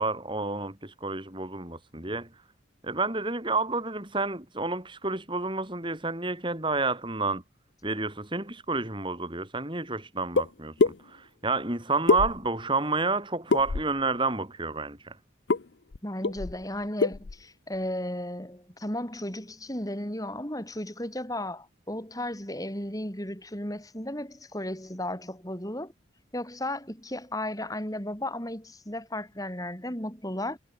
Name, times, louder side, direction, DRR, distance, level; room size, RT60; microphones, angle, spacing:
voice 1, 0.0-2.3 2.8-7.4 7.8-15.2, right 3 dB, 25° right, 4.6 m, -30 dB
sound 1, 10.4-10.5 10.8-11.0 12.1-12.7 13.5-14.0 15.5-15.6 15.9-16.0 16.2-16.6 17.0-17.3, left 4 dB, 65° left, 0.6 m, -24 dB
voice 2, 16.0-25.9 26.3-30.6, left 1 dB, 20° left, 7.3 m, -34 dB
head